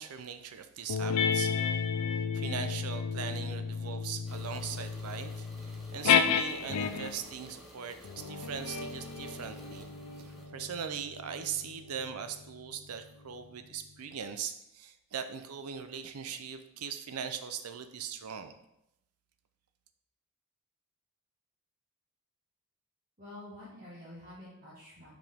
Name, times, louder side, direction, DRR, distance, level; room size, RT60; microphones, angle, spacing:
voice 1, 0.0-1.8 2.3-9.9 10.2-18.6, right 7 dB, 90° right, 9 dB, 0.6 m, -40 dB
sound 1, 0.9-7.3 8.0-13.0, left 7 dB, 85° left, 0.4 m, -32 dB
sound 2, 4.2-10.5, equal, ahead, 1.1 m, -52 dB
voice 2, 23.2-25.1, left 1 dB, 40° right, -11 dB, 2.0 m, -48 dB
5.9 x 4.9 x 3.5 m, 0.82 s
head